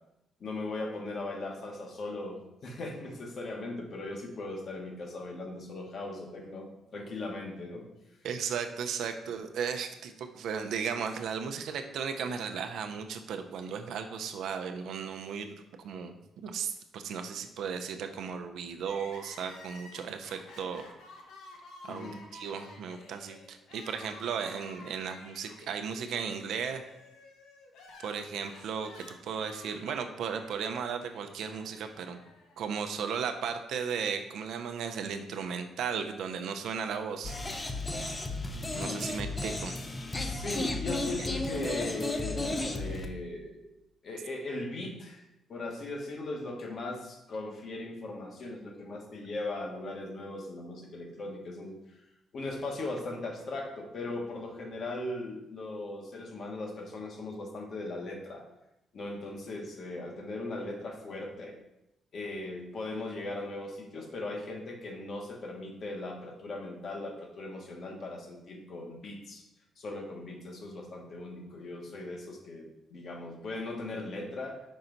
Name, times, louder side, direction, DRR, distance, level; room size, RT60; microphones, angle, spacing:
voice 1, 0.4-7.8 21.9-22.2 38.5-39.1 40.2-43.7 44.0-45.2 45.5-51.8 52.3-58.4 58.9-61.5 62.1-69.4 69.8-74.6, left 2 dB, 55° left, 2 dB, 1.2 m, -38 dB
voice 2, 8.2-20.8 21.8-26.8 28.0-32.2 32.6-37.4 38.7-39.8, right 6 dB, 75° right, 6 dB, 0.6 m, -35 dB
Crying sobbing, 18.8-33.0 33.2-33.3 34.3-35.5, left 2 dB, 90° left, 0.9 m, -52 dB
sound 1, 37.2-43.1, left 2 dB, 25° left, 0.6 m, -34 dB
5.4 x 4.4 x 3.9 m, 0.92 s
cardioid pair, 90°, 0 cm